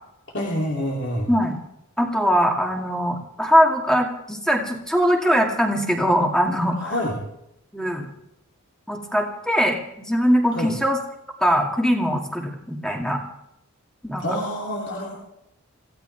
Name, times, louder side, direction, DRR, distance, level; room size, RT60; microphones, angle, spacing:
voice 1, 0.3-1.3 6.7-7.2 10.5-10.7 14.2-15.2, equal, 50° left, -3 dB, 3.0 m, -27 dB
voice 2, 2.0-6.9 7.7-8.1 8.9-11.0 11.4-13.2 14.0-14.2, equal, 5° left, 1 dB, 2.3 m, -21 dB
26.0 x 16.0 x 3.5 m, 0.82 s
head